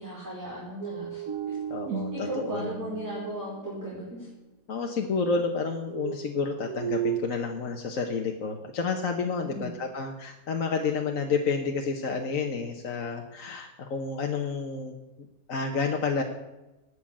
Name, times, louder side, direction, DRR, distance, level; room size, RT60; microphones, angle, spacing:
voice 1, 0.0-1.6 2.1-4.3 9.4-9.7, right 1 dB, 10° right, -7 dB, 4.3 m, -37 dB
sound 1, 0.8-4.2 5.9-7.2, right 8 dB, 65° right, 1.5 m, -34 dB
voice 2, 1.7-2.7 4.7-14.9 15.5-16.2, left 5 dB, 60° left, 3 dB, 1.5 m, -30 dB
18.5 x 6.4 x 8.7 m, 1.0 s
omnidirectional pair, 1.7 m